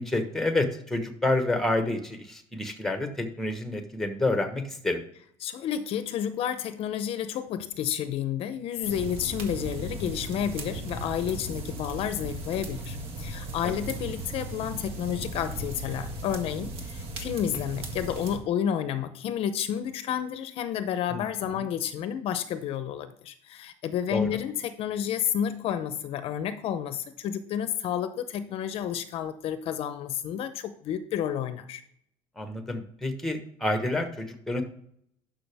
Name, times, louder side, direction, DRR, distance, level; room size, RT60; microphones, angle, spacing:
voice 1, 0.0-5.0 13.6-13.7 21.1-21.2 21.5-21.6 24.1-24.3 32.4-34.6, left 2 dB, 5° left, 7 dB, 1.2 m, -28 dB
voice 2, 5.4-31.8, left 9 dB, 55° left, 11 dB, 0.7 m, -30 dB
sound 1, 8.8-18.4, right 2 dB, 50° right, 1.7 m, -37 dB
11.5 x 5.9 x 3.4 m, 0.68 s
cardioid pair, 140°, 12 cm